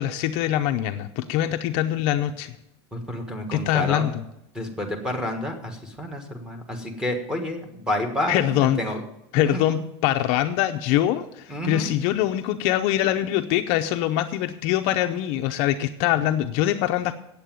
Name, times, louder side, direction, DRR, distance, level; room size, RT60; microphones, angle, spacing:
voice 1, 0.0-2.5 3.5-4.1 8.3-8.8 9.3-17.1, left 12 dB, 45° left, 7 dB, 0.6 m, -23 dB
voice 2, 2.9-4.2 4.5-9.0 9.3-9.8 11.5-11.9, left 1 dB, 5° right, 2 dB, 1.5 m, -30 dB
8.4 x 8.3 x 9.2 m, 0.82 s
supercardioid pair, 160°, 14 cm